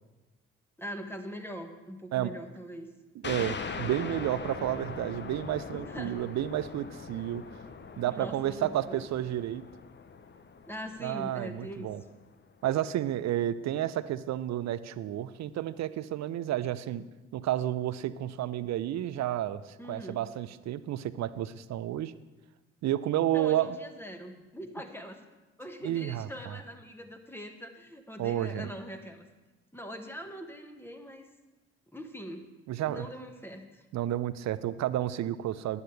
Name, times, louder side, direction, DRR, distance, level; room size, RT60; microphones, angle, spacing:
voice 1, 0.8-2.9 5.7-6.2 6.7-6.9 8.0-9.1 10.7-11.9 19.8-20.2 23.3-25.2 25.6-29.3 29.7-31.2 31.9-32.5 32.8-33.8, equal, 5° left, 4 dB, 1.7 m, -42 dB
sound 1, 3.2-12.4, left 5 dB, 35° left, 1.0 m, -42 dB
voice 2, 3.2-7.4 8.0-9.6 11.0-12.0 12.6-17.0 17.3-22.1 22.8-23.8 25.8-26.6 28.2-28.7 32.7-33.1 33.9-35.8, right 12 dB, 55° right, 15 dB, 0.6 m, -31 dB
15.0 x 10.5 x 3.4 m, 1.1 s
hypercardioid pair, 45°, 34 cm